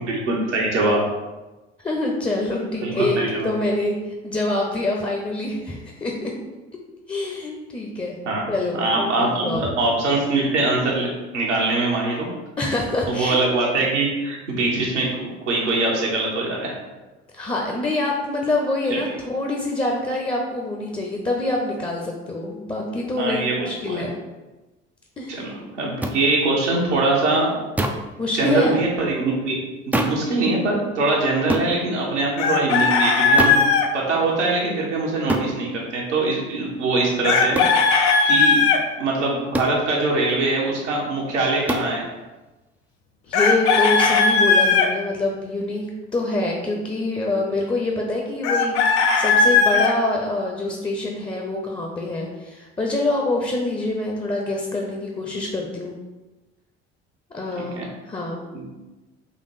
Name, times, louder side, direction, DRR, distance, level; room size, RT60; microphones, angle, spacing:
voice 1, 0.1-1.0 2.8-3.5 8.2-8.4 8.8-11.1 11.3-12.3 13.1-16.7 18.9-19.0 23.2-24.0 25.3-27.5 28.3-29.6 29.9-33.6 33.9-37.6 38.2-38.6 39.0-42.0 57.6-57.9 58.5-58.7, right 2 dB, 80° right, -3 dB, 1.1 m, -23 dB
voice 2, 1.8-3.2 3.4-4.0 4.2-6.3 7.1-8.1 8.5-9.6 12.6-13.4 17.3-24.1 25.2-25.5 28.2-28.7 43.3-48.7 49.2-55.9 57.3-57.8 58.1-58.4, left 2 dB, 15° left, -1 dB, 0.7 m, -25 dB
sound 1, 26.0-26.2 27.8-28.1 29.9-30.3 31.5-31.7 33.4-33.7 35.3-35.5 37.5-37.8 39.5-39.8 41.7-41.9, right 1 dB, 5° right, 0.4 m, -24 dB
Chicken rooster, 32.4-33.9 37.2-38.8 43.3-44.9 48.4-49.9, left 4 dB, 60° left, 0.6 m, -17 dB
4.1 x 2.9 x 4.2 m, 1.1 s
figure-of-eight pair, 55°, 35 cm